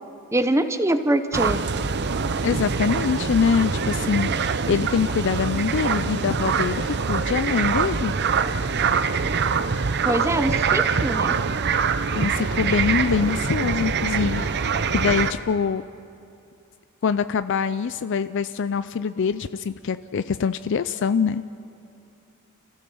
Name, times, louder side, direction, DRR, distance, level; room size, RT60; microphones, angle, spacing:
voice 1, 0.3-1.6 10.0-11.3, right 1 dB, 15° right, 9 dB, 0.8 m, -23 dB
sound 1, 1.3-15.3, right 5 dB, 50° right, 0.7 m, -24 dB
voice 2, 2.4-8.1 12.1-15.8 17.0-21.4, left 6 dB, 60° left, 13 dB, 0.4 m, -24 dB
28.5 x 15.5 x 6.9 m, 2.7 s
head